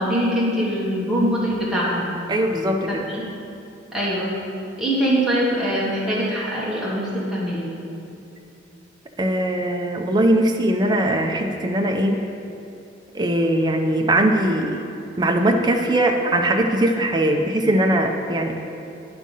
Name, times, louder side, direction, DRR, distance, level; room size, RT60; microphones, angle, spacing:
voice 1, 0.0-2.1 2.9-3.0 3.9-4.4 4.8-7.7, equal, 5° right, -7 dB, 1.2 m, -22 dB
voice 2, 2.3-3.1 9.2-12.2 13.1-14.8 15.2-18.6, right 1 dB, 20° right, 3 dB, 0.4 m, -20 dB
9.6 x 3.7 x 5.4 m, 2.7 s
head